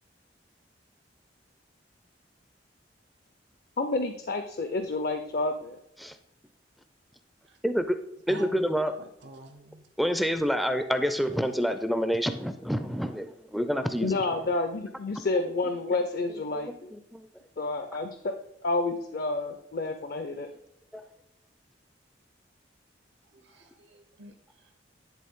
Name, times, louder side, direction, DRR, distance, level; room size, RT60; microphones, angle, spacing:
voice 1, 3.8-5.8 14.0-16.9 17.6-18.3 18.6-20.5, left 3 dB, 55° left, 7 dB, 0.5 m, -29 dB
voice 2, 7.6-8.0 8.3-8.9 10.0-14.4 16.5-16.6 16.9-17.3 20.9-21.0, equal, ahead, 8 dB, 0.4 m, -28 dB
voice 3, 8.3-8.6 9.0-9.9 23.2-24.7, right 1 dB, 70° right, 4 dB, 0.8 m, -47 dB
10.0 x 3.7 x 3.6 m, 0.81 s
head